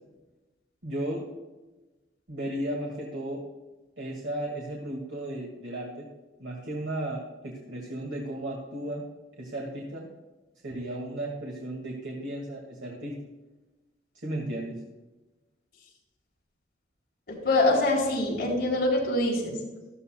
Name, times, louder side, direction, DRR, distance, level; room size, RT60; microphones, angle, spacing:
voice 1, 0.8-1.3 2.3-3.4 4.0-6.1 6.4-9.1 9.4-10.1 10.6-13.2 14.2-14.8, right 1 dB, 90° right, -3 dB, 2.0 m, -34 dB
voice 2, 17.3-19.6, left 2 dB, 55° left, -4 dB, 3.9 m, -24 dB
13.5 x 13.5 x 2.3 m, 1.1 s
head